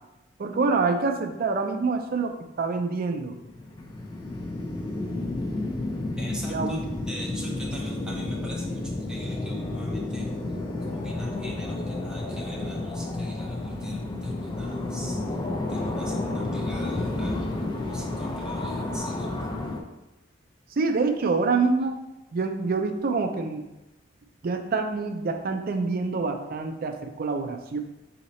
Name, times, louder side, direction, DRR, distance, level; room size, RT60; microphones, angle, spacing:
voice 1, 0.4-3.4 6.4-6.9 20.8-22.0 22.3-23.6 24.4-27.8, right 4 dB, 50° right, 5 dB, 0.5 m, -26 dB
sound 1, 3.3-19.8, left 2 dB, 25° left, 0.5 m, -31 dB
sound 2, 3.5-11.1, right 2 dB, 55° left, 1.2 m, -45 dB
voice 2, 6.2-6.8 7.1-8.8 9.1-10.2 11.0-11.7 12.0-13.6 13.8-14.0 14.6-15.2 15.7-17.4 17.9-19.3, right 1 dB, 5° right, -3 dB, 0.8 m, -42 dB
4.1 x 2.8 x 4.2 m, 0.96 s
head